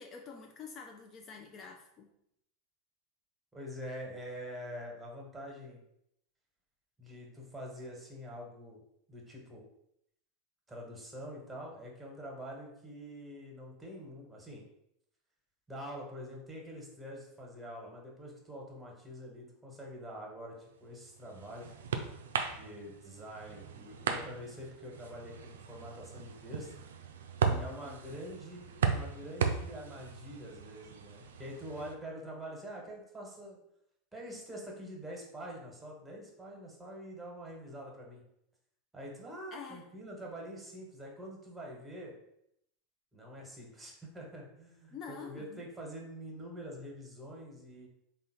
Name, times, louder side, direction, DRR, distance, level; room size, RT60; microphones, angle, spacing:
voice 1, 0.0-2.1 27.4-28.2 39.5-39.9 44.9-45.7, left 5 dB, 40° left, 2 dB, 0.5 m, -48 dB
voice 2, 3.5-5.8 7.0-8.8 9.1-9.7 10.7-14.6 15.7-21.7 22.5-26.7 27.6-33.6 34.1-38.2 38.9-42.1 43.1-47.9, equal, 10° right, -1 dB, 1.3 m, -45 dB
sound 1, 20.8-31.9, right 6 dB, 75° right, 0.4 m, -37 dB
3.7 x 2.4 x 4.2 m, 0.77 s
hypercardioid pair, 85°, 0 cm